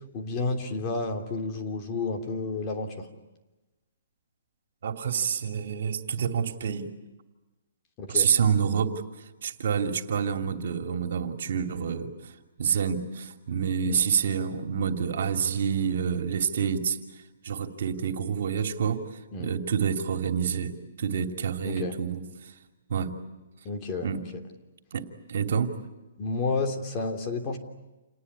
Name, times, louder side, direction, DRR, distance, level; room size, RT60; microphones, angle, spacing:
voice 1, 0.1-3.1 8.0-8.3 13.9-14.0 19.3-19.5 21.6-22.0 23.6-24.1 26.2-27.6, left 3 dB, 30° left, 4 dB, 3.1 m, -31 dB
voice 2, 4.8-6.9 8.1-8.9 9.4-12.3 12.6-17.0 17.4-19.0 19.4-22.5 22.9-23.1 24.0-24.2 24.9-25.8, right 7 dB, 65° right, 6 dB, 2.7 m, -28 dB
29.0 x 19.5 x 9.9 m, 1.1 s
hypercardioid pair, 155°, 0 cm